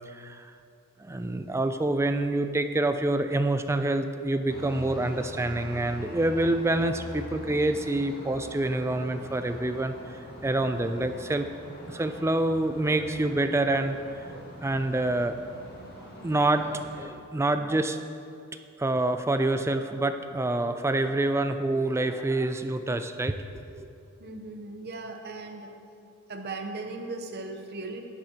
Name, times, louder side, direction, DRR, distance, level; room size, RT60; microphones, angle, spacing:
voice 1, 0.1-0.4 1.0-11.5 11.9-14.0 14.3-15.4 16.2-18.0 18.8-23.4 23.7-23.9, right 2 dB, 10° right, 9 dB, 0.3 m, -27 dB
sound 1, 4.5-17.0, equal, 45° left, 1.9 m, -43 dB
voice 2, 24.2-25.7 26.3-28.0, right 3 dB, 45° right, 4 dB, 0.8 m, -37 dB
11.0 x 10.5 x 2.9 m, 2.5 s
head